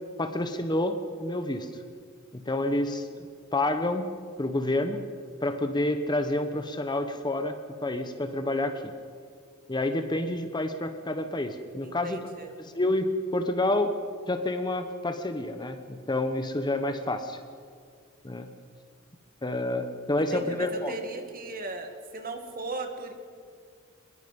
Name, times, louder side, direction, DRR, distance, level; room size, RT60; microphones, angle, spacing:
voice 1, 0.2-1.7 2.3-5.0 5.4-8.9 9.7-14.0 14.3-17.4 18.2-18.5 19.4-20.9, left 1 dB, 20° left, 8 dB, 1.0 m, -29 dB
voice 2, 11.8-12.5 20.3-23.1, right 2 dB, 45° right, 5 dB, 2.3 m, -37 dB
25.0 x 21.0 x 5.4 m, 2.1 s
head